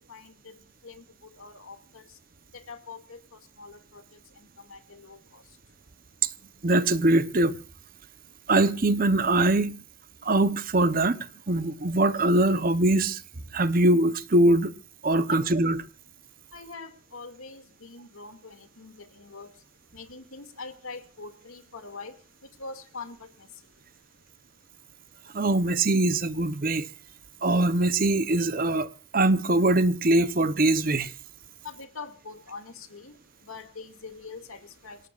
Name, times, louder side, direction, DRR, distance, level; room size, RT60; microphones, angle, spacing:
voice 1, 0.1-0.5 0.8-1.0 1.4-1.8 2.5-3.2 3.6-4.0 4.7-5.2 16.5-19.5 19.9-22.1 22.6-23.2 31.6-33.1 33.5-35.0, left 4 dB, 80° left, 2.3 m, -43 dB
voice 2, 6.6-7.6 8.5-9.7 10.2-11.2 11.5-13.2 13.5-14.7 15.0-15.8 25.3-26.9 27.4-31.1, right 2 dB, 40° right, 0.8 m, -22 dB
27.0 x 18.0 x 2.4 m
head